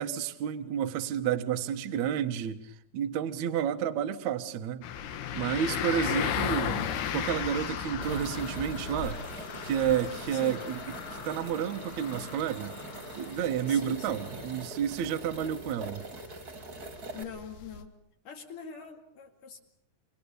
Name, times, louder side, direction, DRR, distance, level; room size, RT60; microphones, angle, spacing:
voice 1, 0.0-4.8 5.3-6.9 7.1-9.2 9.6-10.8 11.1-12.7 13.2-16.0, right 9 dB, 60° right, 8 dB, 2.1 m, -30 dB
sound 1, 4.8-17.8, left 8 dB, 70° left, 3.4 m, -36 dB
voice 2, 6.0-6.4 10.3-10.6 13.7-14.5 17.1-17.9 18.3-19.6, left 6 dB, 55° left, 3 dB, 3.5 m, -44 dB
sound 2, 8.0-17.2, right 3 dB, 30° right, 2.1 m, -44 dB
28.0 x 23.5 x 6.9 m, 0.70 s
omnidirectional pair, 4.9 m